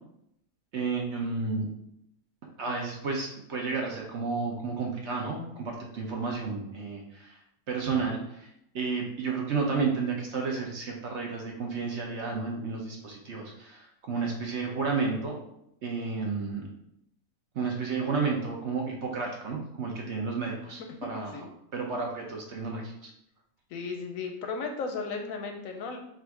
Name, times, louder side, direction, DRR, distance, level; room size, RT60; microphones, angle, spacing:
voice 1, 0.7-1.7 2.6-7.4 7.7-8.5 8.7-15.4 15.8-16.6 17.5-21.5 21.7-23.1, right 4 dB, 60° right, 0 dB, 0.8 m, -32 dB
voice 2, 23.7-26.0, left 4 dB, 70° left, 4 dB, 0.9 m, -35 dB
3.5 x 2.5 x 4.5 m, 0.77 s
omnidirectional pair, 1.6 m